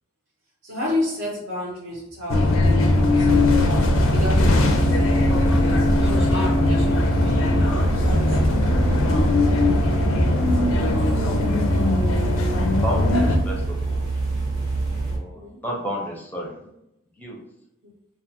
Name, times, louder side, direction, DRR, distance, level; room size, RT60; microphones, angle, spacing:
voice 1, 0.6-3.6 4.0-5.1 5.5-9.1 15.2-15.6 17.8-17.9, left 1 dB, 65° right, -8 dB, 0.9 m, -32 dB
sound 1, 2.3-13.4, left 2 dB, 80° left, 0.4 m, -20 dB
sound 2, 3.1-10.8, equal, 30° right, 0.7 m, -39 dB
sound 3, 3.1-15.2, right 3 dB, 90° right, 1.1 m, -26 dB
voice 2, 10.5-11.4 12.1-12.5 12.8-14.1 15.1-16.6 17.2-17.4, equal, 10° left, -2 dB, 0.6 m, -33 dB
2.4 x 2.3 x 2.7 m, 0.81 s
head